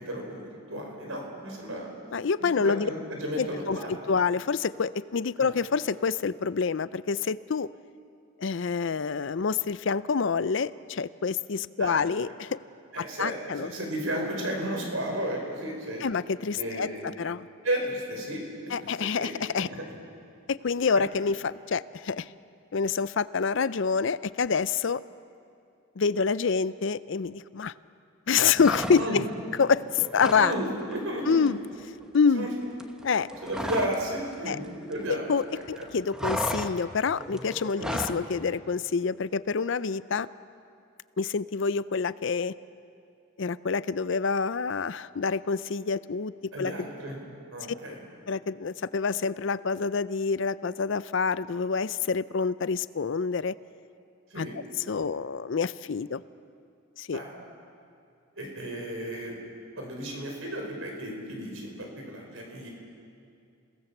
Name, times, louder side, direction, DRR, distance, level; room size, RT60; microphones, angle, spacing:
voice 1, 0.0-1.9 2.5-4.1 5.4-5.5 11.8-12.0 12.9-16.1 16.5-17.1 17.6-18.4 18.8-19.8 28.9-29.2 30.3-31.4 32.3-32.5 33.4-35.2 35.8-35.9 37.8-38.0 46.5-48.0 54.3-54.6 57.1-57.3 58.4-62.7, right 1 dB, 70° right, 1 dB, 5.1 m, -34 dB
voice 2, 2.1-2.9 3.4-7.7 8.4-12.6 13.0-13.7 16.0-17.5 18.7-19.7 20.5-22.3 22.7-25.0 26.0-27.7 28.3-29.2 29.6-30.5 31.3-31.6 32.1-32.5 33.0-33.3 34.5-34.6 35.3-40.3 41.2-42.5 43.4-46.3 46.6-46.9 48.3-53.5 54.4-56.2 57.0-57.2, left 5 dB, 55° left, 16 dB, 0.5 m, -27 dB
sound 1, 28.5-29.4 29.7-30.5 30.8-31.0 31.3-34.1 34.3-35.4 35.7-38.2, equal, 5° right, 1.0 m, -34 dB
29.0 x 18.0 x 7.2 m, 2.4 s
head